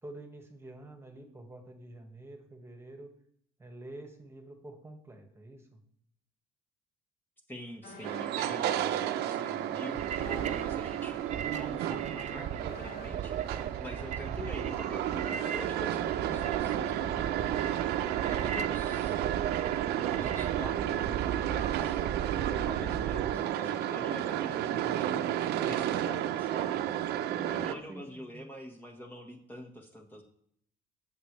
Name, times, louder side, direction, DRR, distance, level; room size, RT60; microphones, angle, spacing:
voice 1, 0.0-3.1 3.6-5.8 13.9-14.8 15.2-15.3 23.0-23.4 27.3-27.6 27.9-28.5, right 1 dB, 15° right, 4 dB, 1.9 m, -48 dB
voice 2, 7.5-17.3 18.2-19.2 20.1-22.0 22.6-26.8 27.5-30.2, equal, 10° left, 1 dB, 1.6 m, -45 dB
sound 1, 7.8-9.5 9.7-9.9 10.2-17.3 17.6-17.8, left 3 dB, 60° left, 2.9 m, -53 dB
sound 2, 8.0-27.7, right 11 dB, 80° right, 0.9 m, -32 dB
sound 3, 9.9-23.4, right 9 dB, 45° right, 0.6 m, -37 dB
20.0 x 7.3 x 3.4 m, 0.67 s
cardioid pair, 130°, 17 cm